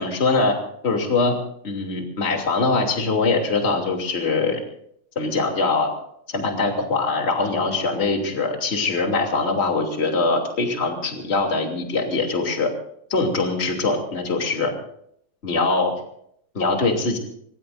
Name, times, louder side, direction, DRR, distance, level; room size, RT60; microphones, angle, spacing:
voice 1, 0.0-1.4 1.6-4.6 5.1-6.0 6.3-12.7 13.1-14.7 15.4-15.9 16.5-17.2, left 3 dB, 20° left, 2 dB, 2.1 m, -22 dB
25.0 x 21.5 x 2.6 m, 0.69 s
omnidirectional pair, 5.3 m